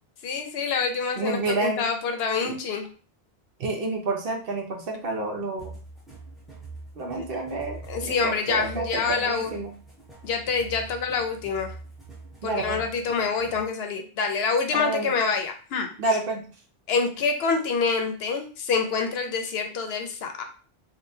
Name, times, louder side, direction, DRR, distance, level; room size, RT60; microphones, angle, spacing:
voice 1, 0.2-2.9 7.2-7.3 7.9-9.6 10.2-11.7 12.4-15.9 16.9-20.4, left 5 dB, 70° left, 5 dB, 0.8 m, -26 dB
voice 2, 1.2-1.8 2.4-2.6 3.6-5.7 7.0-9.7 12.4-12.8 14.7-15.1 16.0-16.4, right 2 dB, 65° right, 1 dB, 0.8 m, -29 dB
sound 1, 5.6-13.8, right 3 dB, ahead, 0.7 m, -43 dB
3.5 x 2.2 x 2.6 m, 0.38 s
omnidirectional pair, 1.1 m